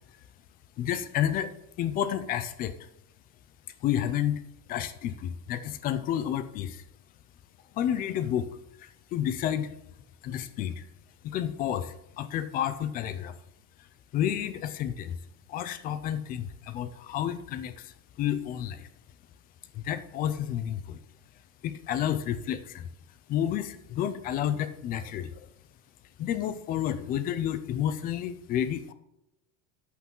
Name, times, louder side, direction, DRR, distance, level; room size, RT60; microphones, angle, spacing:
voice 1, 0.8-1.5 1.8-2.7 3.8-4.4 4.7-6.8 7.7-8.5 8.8-9.7 10.2-10.8 11.2-13.4 14.1-15.2 15.5-18.9 19.7-21.0 21.6-22.9 23.3-25.5 26.2-28.9, left 10 dB, 20° left, 13 dB, 0.3 m, -30 dB
14.0 x 8.5 x 3.7 m, 0.82 s
supercardioid pair, 155°, 50 cm